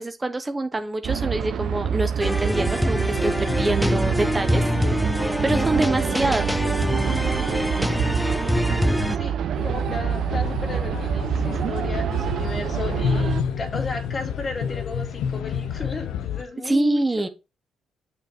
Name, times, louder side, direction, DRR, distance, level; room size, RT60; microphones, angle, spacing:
voice 1, 0.0-4.6 5.1-6.4 16.6-17.3, right 2 dB, 20° right, 0.7 m, -25 dB
sound 1, 1.0-13.4, right 8 dB, 70° right, 0.6 m, -26 dB
sound 2, 2.2-9.2, left 1 dB, 5° left, 0.4 m, -24 dB
voice 2, 3.4-3.8 9.1-17.3, left 2 dB, 35° left, 2.7 m, -34 dB
sound 3, 9.5-16.4, left 8 dB, 85° left, 0.8 m, -29 dB
6.9 x 5.3 x 4.3 m
cardioid pair, 90°, 0 cm